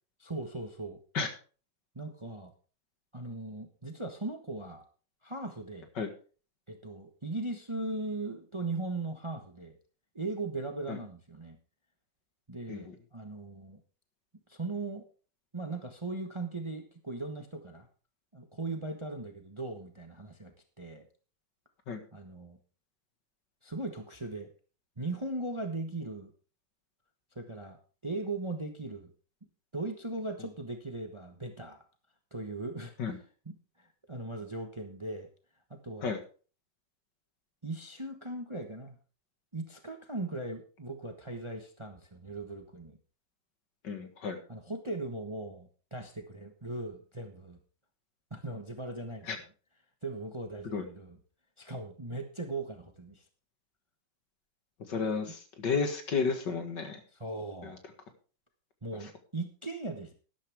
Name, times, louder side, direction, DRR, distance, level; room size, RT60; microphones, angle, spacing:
voice 1, 0.2-1.0 1.9-2.5 3.1-4.8 5.2-5.9 6.7-9.8 10.1-11.6 12.5-13.8 14.5-15.0 15.5-17.9 18.3-21.1 22.1-22.6 23.6-24.5 25.0-26.3 27.3-27.8 28.0-29.1 29.7-31.8 32.3-33.1 33.4-35.3 35.7-36.2 37.6-38.9 39.5-43.0 44.5-47.6 48.3-49.3 50.0-51.2 51.6-53.2 57.1-57.8 58.8-60.1, right 2 dB, 20° right, 5 dB, 1.1 m, -38 dB
voice 2, 43.8-44.4 49.3-49.4 50.6-50.8 54.9-57.0 57.6-57.8, left 5 dB, 65° left, 6 dB, 2.4 m, -32 dB
12.5 x 11.5 x 3.5 m, 0.38 s
omnidirectional pair, 2.1 m